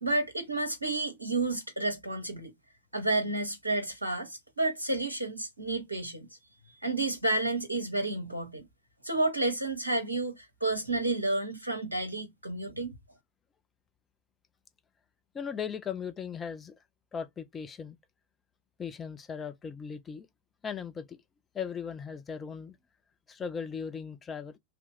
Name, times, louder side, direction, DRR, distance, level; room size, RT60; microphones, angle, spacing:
voice 1, 0.0-2.5 2.9-6.3 6.6-8.7 9.0-13.0, right 2 dB, 80° right, 0.6 m, -31 dB
voice 2, 15.3-16.8 17.1-18.0 18.8-20.3 20.6-21.2 21.5-22.8 23.3-24.6, left 6 dB, 20° left, 0.4 m, -38 dB
2.9 x 2.3 x 3.2 m
figure-of-eight pair, 90°, 0 cm